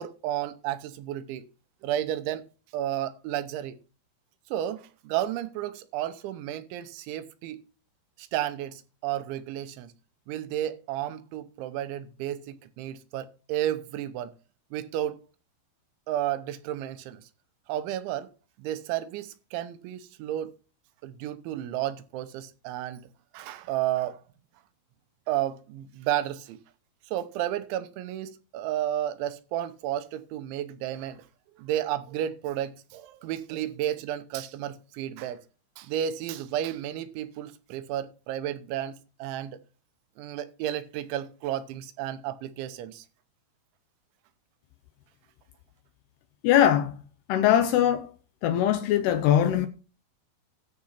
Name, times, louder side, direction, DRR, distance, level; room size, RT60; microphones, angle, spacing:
voice 1, 0.0-1.5 1.8-2.4 2.7-3.8 4.5-7.6 8.2-9.9 10.3-14.3 14.7-15.2 16.1-17.2 17.7-18.3 18.6-20.6 21.0-23.0 23.3-24.2 25.3-26.6 27.1-31.3 31.6-35.4 35.8-39.6 40.2-43.1, right 12 dB, 90° right, 3.3 m, -32 dB
voice 2, 46.4-47.0 47.3-48.1 48.4-49.7, left 10 dB, 80° left, 2.5 m, -21 dB
13.0 x 4.9 x 5.7 m
omnidirectional pair, 5.2 m